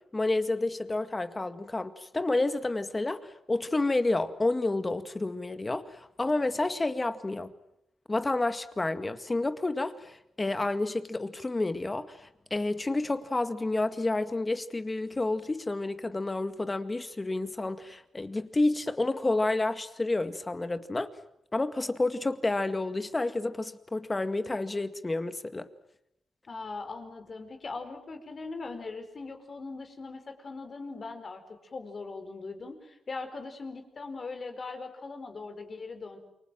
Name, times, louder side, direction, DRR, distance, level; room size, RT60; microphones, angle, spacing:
voice 1, 0.1-7.5 8.1-21.1 21.5-25.7, left 2 dB, 25° left, 10 dB, 2.0 m, -30 dB
voice 2, 26.5-36.2, left 3 dB, 45° left, 7 dB, 4.8 m, -40 dB
29.0 x 24.0 x 7.7 m, 0.78 s
cardioid pair, 80°, 0 cm